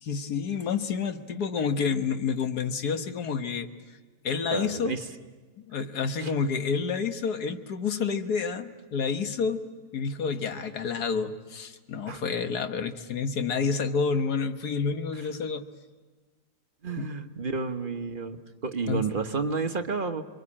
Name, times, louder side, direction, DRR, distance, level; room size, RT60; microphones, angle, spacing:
voice 1, 0.0-3.7 4.2-4.9 5.6-9.6 9.9-15.7 17.0-17.1 18.9-19.0, left 5 dB, 90° left, 8 dB, 1.8 m, -29 dB
voice 2, 4.5-5.0 6.2-6.3 12.1-12.2 16.8-20.2, right 4 dB, 35° right, 6 dB, 1.2 m, -31 dB
27.5 x 22.5 x 8.6 m, 1.4 s
omnidirectional pair, 1.6 m